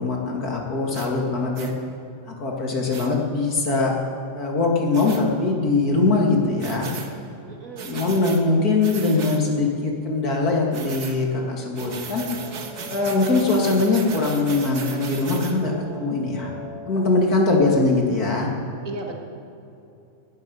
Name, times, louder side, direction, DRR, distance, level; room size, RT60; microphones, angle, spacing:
voice 1, 0.0-1.7 2.4-3.9 4.3-6.9 7.8-12.2 12.9-16.5 16.9-18.5, left 3 dB, 70° left, -1 dB, 2.8 m, -22 dB
sound 1, 0.9-1.1 1.6-1.7 2.9-3.1 4.9-5.2 6.6-7.1 7.8-8.4 8.8-9.4 10.7-11.2 11.8-15.6, right 5 dB, 80° right, 1.8 m, -36 dB
voice 2, 7.5-8.0 18.9-19.1, right 2 dB, 60° right, 1 dB, 2.1 m, -35 dB
sound 2, 11.8-17.1, left 1 dB, 40° left, 5.3 m, -40 dB
20.0 x 12.5 x 5.5 m, 2.7 s
omnidirectional pair, 1.7 m